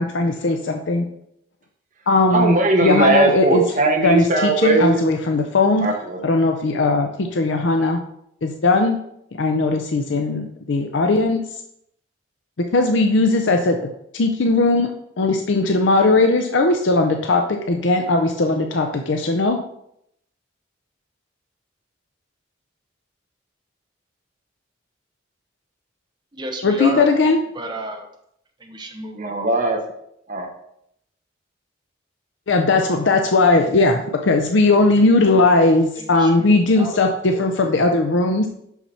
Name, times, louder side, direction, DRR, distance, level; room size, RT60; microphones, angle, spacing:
voice 1, 0.0-1.1 2.1-2.6 2.8-3.6 4.0-5.9 6.2-8.0 8.4-9.0 9.4-11.4 12.7-13.8 14.1-14.9 15.2-19.6 26.6-27.4 32.5-38.5, left 2 dB, 70° left, 5 dB, 0.6 m, -18 dB
voice 2, 2.3-5.1 5.8-6.2 29.1-29.8 30.3-30.5, right 2 dB, 40° right, 2 dB, 1.0 m, -19 dB
voice 3, 26.3-27.1 27.5-28.1 28.6-29.3 36.0-37.0 37.3-37.4, right 1 dB, 20° right, 3 dB, 0.9 m, -31 dB
5.9 x 5.8 x 4.1 m, 0.74 s
head